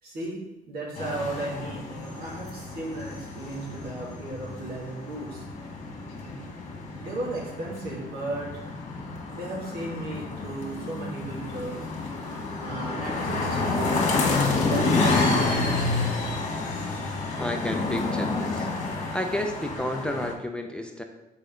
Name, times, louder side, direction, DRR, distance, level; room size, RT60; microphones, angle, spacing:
voice 1, 0.0-0.4 0.7-5.4 6.2-6.4 6.9-8.6 9.3-11.9 12.6-15.9, right 2 dB, 65° right, -3 dB, 2.4 m, -35 dB
sound 1, 0.9-20.3, left 3 dB, 40° left, 1.7 m, -29 dB
voice 2, 17.4-18.7 19.1-21.0, left 1 dB, 5° left, 4 dB, 0.5 m, -31 dB
6.6 x 4.9 x 3.8 m, 1.0 s
cardioid pair, 110°, 17 cm